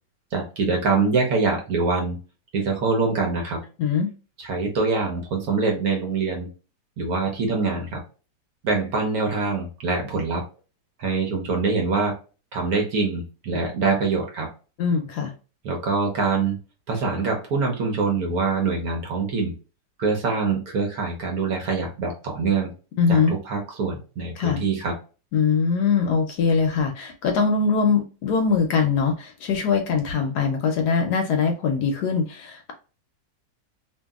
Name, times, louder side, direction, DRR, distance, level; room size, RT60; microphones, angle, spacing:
voice 1, 0.3-2.2 2.5-3.6 4.4-6.5 7.0-8.0 8.6-10.4 11.0-12.2 12.5-14.5 15.6-16.6 16.9-19.5 20.0-22.7 23.1-24.9, right 4 dB, 65° right, 1.0 m, -24 dB
voice 2, 3.8-4.1 14.8-15.3 23.0-23.3 24.4-24.6 25.3-32.7, left 5 dB, 70° left, 1.0 m, -22 dB
2.8 x 2.6 x 2.3 m
omnidirectional pair, 2.0 m